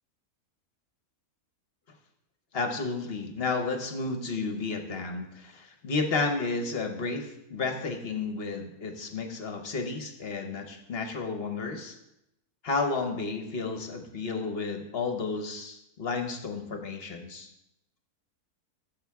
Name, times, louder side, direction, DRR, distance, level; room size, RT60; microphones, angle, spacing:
voice 1, 2.5-12.0 12.6-17.5, left 3 dB, 45° left, 5 dB, 1.0 m, -32 dB
13.5 x 7.1 x 3.5 m, 0.86 s
omnidirectional pair, 1.6 m